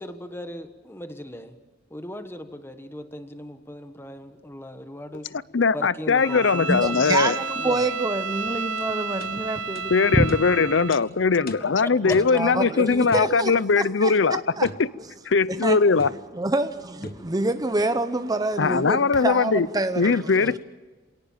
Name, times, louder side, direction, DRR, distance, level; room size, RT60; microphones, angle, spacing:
voice 1, 0.0-1.5 1.9-5.3 5.7-7.1 7.6-7.9 12.1-12.2, left 1 dB, 15° left, 1.5 m, -38 dB
voice 2, 5.5-7.4 9.9-14.7 15.3-16.1 18.6-19.7 20.0-20.6, left 4 dB, 70° left, 0.7 m, -20 dB
Bowed string instrument, 6.1-11.0, right 4 dB, 85° right, 1.3 m, -31 dB
voice 3, 6.7-10.2 11.6-11.7 12.0-14.7 15.5-15.8 16.3-20.6, right 2 dB, 20° right, 0.8 m, -27 dB
sound 1, 8.8-8.9 9.2-9.3 9.7-9.9 10.3-10.4 10.9-11.0 11.5-11.7 12.1-12.4 13.1-13.3 14.6-14.9 16.0-16.2 17.0-17.3, left 2 dB, 50° left, 1.5 m, -39 dB
27.5 x 18.0 x 7.4 m
head